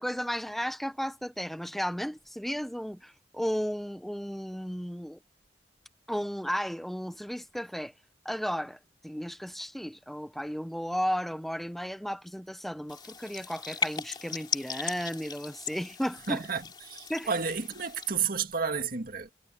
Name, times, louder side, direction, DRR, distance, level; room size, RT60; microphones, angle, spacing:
voice 1, 0.0-5.2 6.1-7.9 8.2-16.4 17.1-17.3, equal, ahead, 0.6 m, -34 dB
sound 1, 12.9-18.1, left 5 dB, 25° left, 3.0 m, -38 dB
voice 2, 16.3-19.3, right 6 dB, 50° right, 2.2 m, -31 dB
head